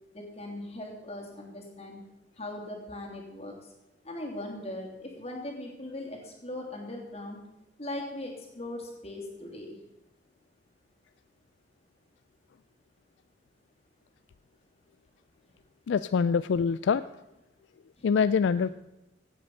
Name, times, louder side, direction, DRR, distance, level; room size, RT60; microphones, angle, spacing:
voice 1, 0.1-2.0 2.4-3.5 4.0-7.4 7.8-9.8 15.9-16.0 18.0-18.1, left 1 dB, 35° left, 0 dB, 3.0 m, -39 dB
voice 2, 15.9-17.1 18.0-18.7, left 6 dB, 75° left, 15 dB, 0.3 m, -25 dB
16.5 x 8.5 x 5.5 m, 0.93 s
head